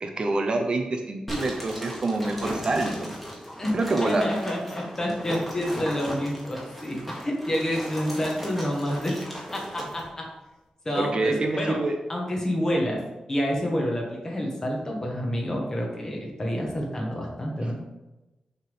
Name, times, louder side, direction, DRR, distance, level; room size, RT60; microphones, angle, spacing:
voice 1, 0.0-3.1 3.7-4.3 11.0-11.9, right 2 dB, 45° right, 4 dB, 0.6 m, -26 dB
sound 1, 1.3-10.1, equal, 5° left, 1.7 m, -37 dB
voice 2, 3.6-9.1 9.5-10.3 10.8-11.8 12.1-13.0 13.3-17.8, equal, 25° left, -1 dB, 1.4 m, -28 dB
6.4 x 3.7 x 5.5 m, 1.0 s
wide cardioid pair, 170°, 2 cm